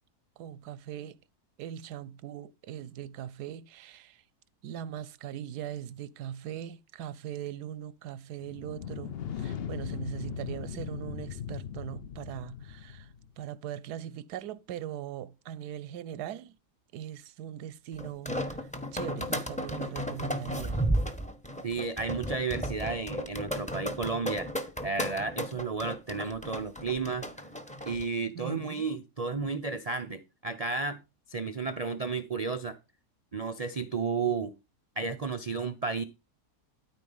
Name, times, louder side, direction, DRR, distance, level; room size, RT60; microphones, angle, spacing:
voice 1, 0.4-1.2 1.6-4.2 4.6-16.6 16.9-20.8 28.3-28.8, right 10 dB, 90° right, 1.2 m, -40 dB
sound 1, 8.4-13.3, left 8 dB, 55° left, 0.7 m, -39 dB
sound 2, 18.0-28.0, equal, 5° left, 0.9 m, -34 dB
voice 2, 21.6-24.5 24.8-27.3 27.9-31.0 31.3-32.8 33.3-34.5 35.0-36.0, right 4 dB, 60° right, 0.3 m, -32 dB
13.0 x 4.4 x 5.5 m
omnidirectional pair, 1.7 m